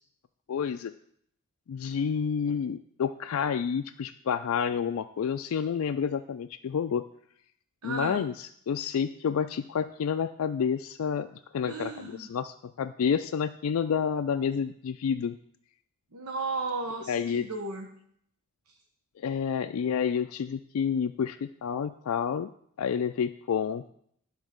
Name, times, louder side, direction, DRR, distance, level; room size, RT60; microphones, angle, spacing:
voice 1, 0.5-0.9 1.7-7.0 7.8-11.3 11.5-15.4 17.1-17.5 19.2-22.5 22.8-23.9, left 7 dB, 70° left, 8 dB, 0.3 m, -29 dB
voice 2, 7.8-8.2 11.7-12.3 16.1-17.9 18.7-18.8, right 3 dB, 80° right, 3 dB, 0.9 m, -34 dB
11.5 x 3.9 x 6.5 m, 0.67 s
head